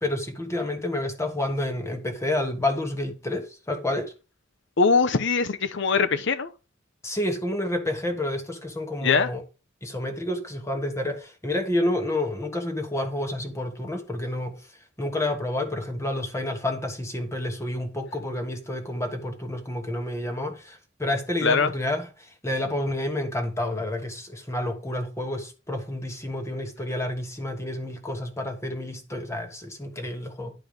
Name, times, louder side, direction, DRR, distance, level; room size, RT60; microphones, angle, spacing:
voice 1, 0.0-4.1 7.0-9.4 9.8-14.6 15.0-30.5, left 1 dB, 15° left, 1.2 m, -29 dB
voice 2, 4.8-6.5 9.0-9.3 21.4-21.7, left 4 dB, 65° left, 0.9 m, -22 dB
10.0 x 4.5 x 5.2 m
head